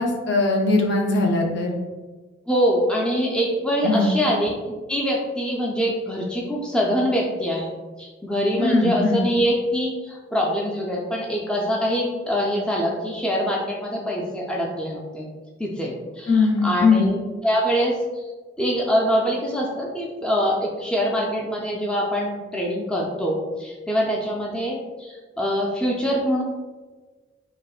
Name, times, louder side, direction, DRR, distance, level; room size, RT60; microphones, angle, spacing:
voice 1, 0.0-1.8 3.8-4.2 8.6-9.2 16.3-17.1, left 3 dB, 60° left, 1 dB, 0.5 m, -20 dB
voice 2, 2.5-7.7 8.0-15.3 15.6-17.2 17.4-18.0 18.6-26.4, equal, 5° left, -3 dB, 0.3 m, -24 dB
4.9 x 2.1 x 2.3 m, 1.3 s
head